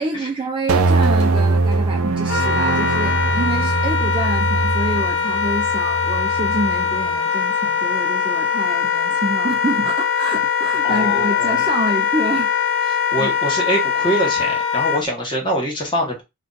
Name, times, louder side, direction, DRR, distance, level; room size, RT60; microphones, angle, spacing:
voice 1, 0.0-12.5 12.8-13.3, right 2 dB, 25° right, 0.3 m, -27 dB
sound 1, 0.7-7.2, right 3 dB, 85° right, 0.4 m, -21 dB
Wind instrument woodwind instrument, 2.3-15.0, left 7 dB, 55° left, 0.5 m, -21 dB
voice 2, 10.8-11.7 12.9-16.2, right 1 dB, 20° left, 1.0 m, -24 dB
2.5 x 2.2 x 3.8 m
head